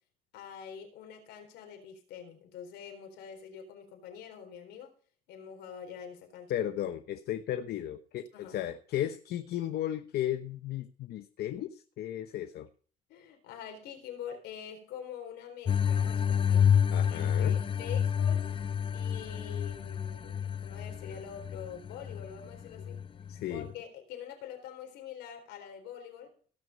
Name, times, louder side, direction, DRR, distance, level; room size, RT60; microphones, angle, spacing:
voice 1, 0.3-4.9 5.3-6.5 8.3-8.6 13.1-16.7 17.0-18.5 18.9-23.0 23.5-26.3, left 8 dB, 85° left, 4 dB, 4.1 m, -45 dB
voice 2, 6.5-12.7 16.9-17.5 23.3-23.7, left 12 dB, 70° left, 8 dB, 1.0 m, -35 dB
sound 1, 15.7-23.7, left 8 dB, 30° left, 0.6 m, -29 dB
17.5 x 6.5 x 5.3 m, 0.42 s
cardioid pair, 110°, 17 cm